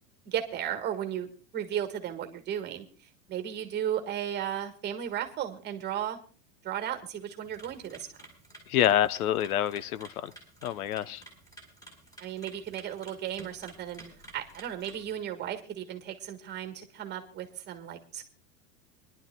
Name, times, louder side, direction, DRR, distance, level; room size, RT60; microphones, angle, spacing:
voice 1, 0.2-2.8 3.3-6.2 6.6-8.3 12.2-14.0 14.3-18.2, right 10 dB, 25° right, 1.6 m, -35 dB
sound 1, 7.4-15.1, right 1 dB, 10° left, 3.7 m, -52 dB
voice 2, 8.7-10.3 10.6-11.2, left 11 dB, 85° left, 0.7 m, -27 dB
25.5 x 11.5 x 2.2 m
supercardioid pair, 155°, 42 cm